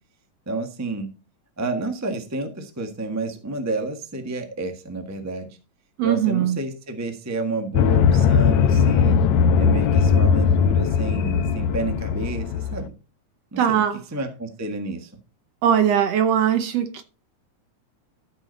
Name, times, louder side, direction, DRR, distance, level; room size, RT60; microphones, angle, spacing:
voice 1, 0.5-1.1 1.6-5.6 6.0-9.2 9.6-12.9 13.5-13.8 14.1-15.1, right 2 dB, 15° right, 0.6 m, -30 dB
voice 2, 6.0-6.6 13.6-14.0 15.6-17.0, right 9 dB, 70° right, 1.7 m, -20 dB
sound 1, 7.7-12.8, left 6 dB, 75° left, 1.9 m, -19 dB
13.5 x 6.2 x 4.0 m
omnidirectional pair, 3.4 m